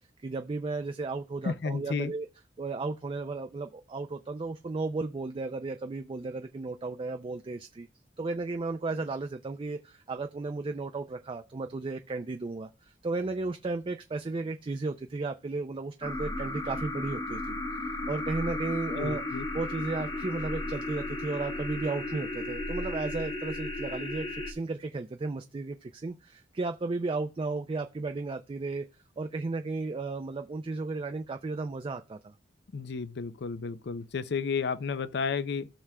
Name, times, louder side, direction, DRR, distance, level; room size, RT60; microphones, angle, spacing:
voice 1, 0.2-2.3 2.6-7.9 8.2-19.2 19.5-28.9 29.2-32.3, right 3 dB, 30° right, 0.3 m, -34 dB
voice 2, 1.4-2.1 18.9-19.4 32.7-35.7, left 5 dB, 65° left, 0.5 m, -32 dB
sound 1, 16.0-24.5, left 2 dB, 25° left, 1.1 m, -35 dB
17.0 x 6.1 x 2.2 m
head